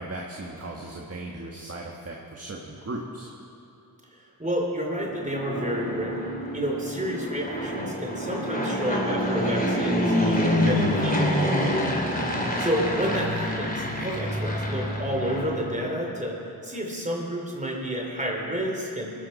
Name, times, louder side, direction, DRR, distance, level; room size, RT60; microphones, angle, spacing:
voice 1, 0.0-3.3 12.3-12.5, right 2 dB, 35° right, -1 dB, 1.7 m, -37 dB
voice 2, 4.1-6.3 6.5-11.5 12.6-16.4 16.6-19.1, equal, 20° right, -1 dB, 2.9 m, -30 dB
Fixed-wing aircraft airplane, 5.0-16.1, left 1 dB, 20° left, 3.0 m, -27 dB
19.0 x 13.0 x 4.3 m, 2.8 s
cardioid pair, 50°, 40 cm